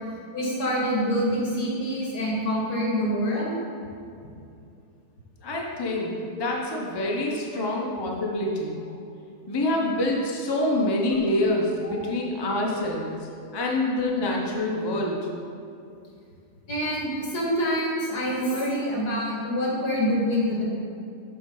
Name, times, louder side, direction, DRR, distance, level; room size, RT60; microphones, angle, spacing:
voice 1, 0.3-3.6 6.4-6.5 7.5-7.6 11.8-12.0 16.7-20.6, equal, 70° left, -4 dB, 2.3 m, -26 dB
voice 2, 5.4-8.8 9.5-13.1 13.5-15.2, left 1 dB, 25° left, -2 dB, 0.6 m, -26 dB
7.5 x 4.6 x 5.5 m, 2.5 s
omnidirectional pair, 1.8 m